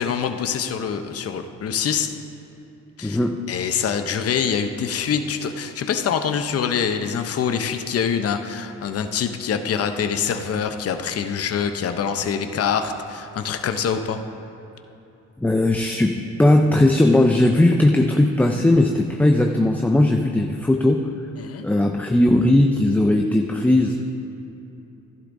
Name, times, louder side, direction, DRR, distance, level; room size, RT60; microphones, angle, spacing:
voice 1, 0.0-2.1 3.0-3.2 3.5-14.2 21.4-21.6, left 7 dB, 50° left, 7 dB, 0.8 m, -25 dB
voice 2, 3.0-3.4 15.4-21.1 21.6-24.1, left 1 dB, 5° left, 2 dB, 0.5 m, -18 dB
15.0 x 11.5 x 2.7 m, 2.9 s
cardioid pair, 90°, 30 cm